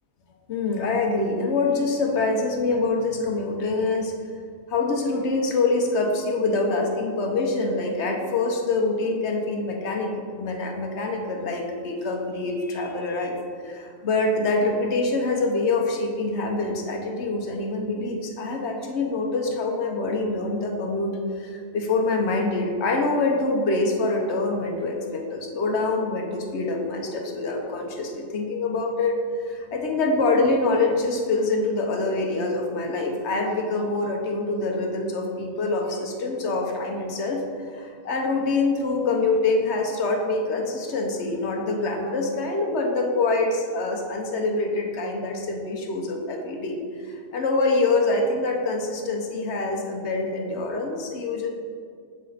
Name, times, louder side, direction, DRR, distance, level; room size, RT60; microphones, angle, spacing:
voice 1, 0.5-4.1 4.7-13.4 13.6-51.5, left 3 dB, 65° left, 1 dB, 1.0 m, -25 dB
7.5 x 4.2 x 3.9 m, 2.2 s
omnidirectional pair, 1.3 m